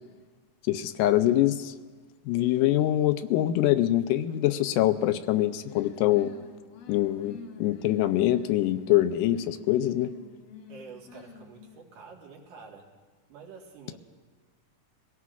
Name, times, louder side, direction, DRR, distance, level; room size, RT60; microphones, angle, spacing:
voice 1, 0.6-1.7 2.3-6.3 6.9-10.1, left 14 dB, 85° left, 10 dB, 2.1 m, -24 dB
sound 1, 5.6-12.0, left 6 dB, 65° left, 1.8 m, -48 dB
voice 2, 10.7-12.9 13.3-14.0, right 5 dB, 80° right, -2 dB, 3.2 m, -48 dB
23.5 x 17.0 x 2.4 m, 1.4 s
omnidirectional pair, 3.7 m